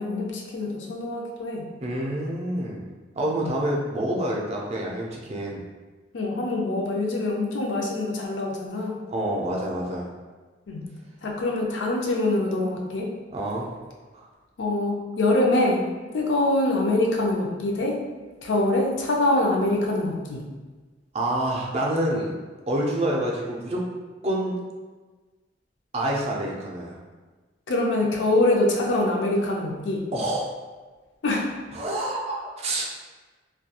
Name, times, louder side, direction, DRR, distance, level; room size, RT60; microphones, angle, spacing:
voice 1, 0.0-1.7 3.4-3.5 6.1-9.0 10.7-10.9 11.2-13.1 14.6-15.9 16.1-18.0 18.4-20.4 27.7-30.1 31.2-31.6, left 2 dB, 75° left, -1 dB, 0.5 m, -24 dB
voice 2, 1.8-2.9 3.2-5.6 9.1-10.1 13.3-13.7 14.1-14.3 21.1-22.3 22.7-23.8 24.2-24.6 25.9-27.0 30.1-30.5 31.7-32.8, right 1 dB, 35° right, -2 dB, 0.4 m, -27 dB
2.2 x 2.2 x 2.8 m, 1.3 s
head